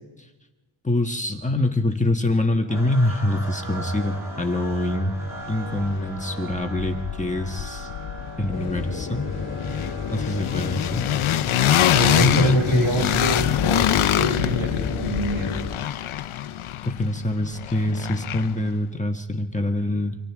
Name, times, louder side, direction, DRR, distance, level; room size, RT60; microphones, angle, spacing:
voice 1, 0.8-5.1 5.5-7.9 8.4-9.3 10.1-11.1 12.2-12.9 16.8-20.2, left 1 dB, 15° left, 3 dB, 1.4 m, -24 dB
sound 1, 2.7-16.8, right 1 dB, 45° right, 7.1 m, -41 dB
sound 2, 4.7-4.8 5.1-6.2 6.5-18.7, left 11 dB, 90° left, 0.8 m, -25 dB
sound 3, 8.5-15.8, left 5 dB, 40° left, 2.3 m, -31 dB
voice 2, 11.9-15.6, right 1 dB, 80° right, 0 dB, 7.7 m, -26 dB
29.0 x 26.0 x 3.6 m, 1.1 s
wide cardioid pair, 130°, 48 cm